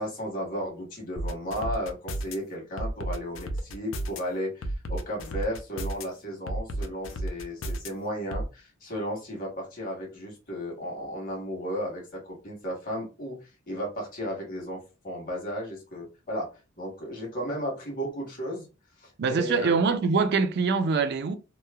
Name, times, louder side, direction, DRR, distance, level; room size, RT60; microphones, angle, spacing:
voice 1, 0.0-13.4 13.7-16.5 16.8-18.7 19.0-19.8, equal, 45° left, 1.1 m, -34 dB
sound 1, 1.2-2.3 2.8-4.2 4.6-6.0 6.5-7.9 8.3-8.5, right 1 dB, 90° left, 0.5 m, -32 dB
voice 2, 19.2-21.3, right 4 dB, 60° right, 0.4 m, -24 dB
3.0 x 2.0 x 2.2 m
head